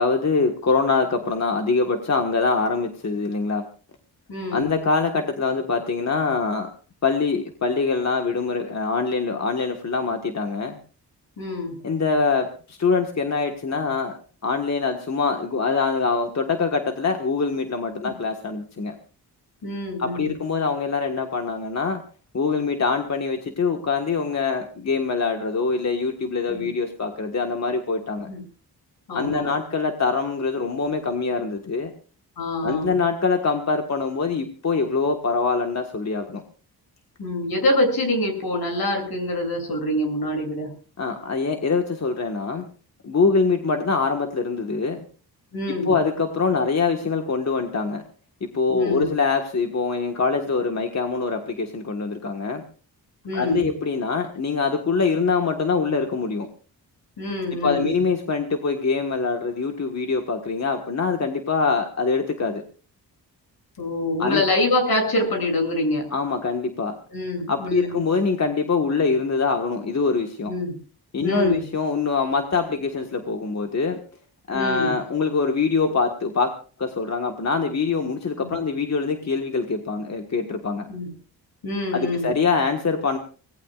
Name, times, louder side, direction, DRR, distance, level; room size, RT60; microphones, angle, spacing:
voice 1, 0.0-3.6 4.5-6.7 7.0-10.8 11.8-14.1 14.4-18.9 20.0-22.0 22.3-28.3 29.1-31.9 32.6-36.4 41.0-42.6 43.0-45.0 45.7-48.0 48.4-52.6 53.3-56.5 57.6-62.6 64.2-64.4 66.1-66.9 67.5-70.5 71.1-74.0 74.5-76.5 76.8-80.9 81.9-83.2, left 4 dB, 45° left, 4 dB, 1.5 m, -24 dB
voice 2, 4.3-4.7 11.4-11.8 19.6-20.4 26.5-26.7 28.3-28.4 29.1-29.5 32.4-32.9 37.2-40.7 45.5-45.9 48.7-49.1 53.2-53.7 57.2-58.0 63.8-66.0 67.1-68.0 70.5-70.7 71.2-71.6 74.5-74.9 78.4-78.5 80.9-81.1 81.6-82.3, left 1 dB, 70° left, 3 dB, 7.9 m, -25 dB
25.0 x 18.5 x 2.5 m, 0.40 s
wide cardioid pair, 135°, 39 cm